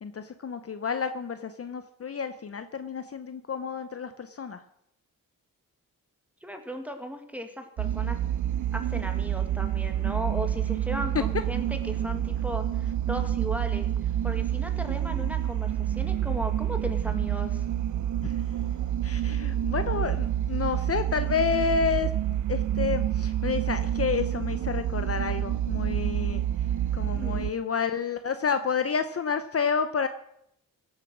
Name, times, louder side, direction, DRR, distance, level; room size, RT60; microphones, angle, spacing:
voice 1, 0.0-4.6 11.1-11.2 18.2-18.4 19.0-22.1 22.5-26.4 26.9-30.1, left 6 dB, 40° left, 10 dB, 0.7 m, -30 dB
voice 2, 6.4-8.2 8.7-13.9 14.2-17.6 27.2-27.5, equal, 5° right, 5 dB, 1.8 m, -36 dB
sound 1, 7.8-27.5, right 11 dB, 60° right, 0.5 m, -28 dB
16.0 x 7.6 x 6.2 m, 0.76 s
cardioid pair, 100°, 35 cm